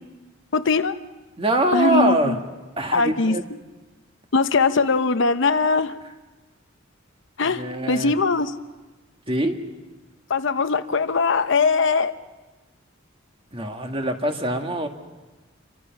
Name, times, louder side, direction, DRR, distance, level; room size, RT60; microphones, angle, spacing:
voice 1, 0.5-1.0 1.7-2.4 2.9-3.4 4.3-5.9 7.4-7.6 7.9-8.5 10.3-12.1, left 4 dB, 65° left, 11 dB, 0.8 m, -20 dB
voice 2, 1.4-2.4 2.8-3.4 7.4-8.1 9.3-9.6 13.5-14.9, right 1 dB, 25° right, 4 dB, 1.8 m, -23 dB
28.5 x 24.0 x 6.0 m, 1.2 s
head